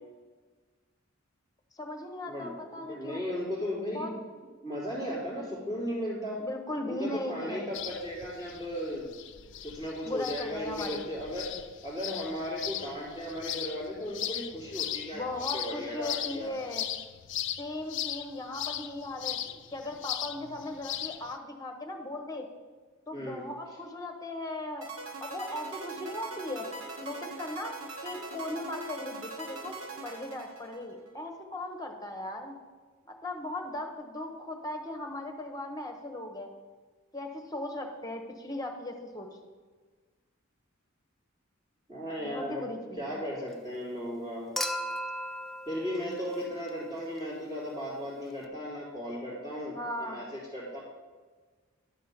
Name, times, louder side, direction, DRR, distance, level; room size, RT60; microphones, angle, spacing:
voice 1, 1.7-3.2 3.9-4.1 6.4-7.7 10.0-11.0 15.1-16.9 17.6-19.4 19.7-22.5 23.1-27.7 28.0-32.6 33.2-36.5 37.1-39.3 42.2-43.2 49.7-50.2, left 1 dB, 20° left, 4 dB, 1.1 m, -38 dB
voice 2, 2.9-4.2 4.6-6.4 6.9-9.1 9.6-11.5 11.8-16.5 23.1-23.4 41.9-42.7 43.0-44.5 45.7-50.8, equal, 25° right, -12 dB, 3.2 m, -36 dB
sound 1, 7.7-21.4, left 11 dB, 60° left, 0.5 m, -38 dB
sound 2, 24.8-31.1, right 2 dB, 80° right, 1.4 m, -42 dB
Human group actions / Chink clink / Liquid, 44.6-46.9 48.4-48.5, equal, ahead, 0.4 m, -36 dB
11.5 x 4.3 x 6.8 m, 1.4 s
head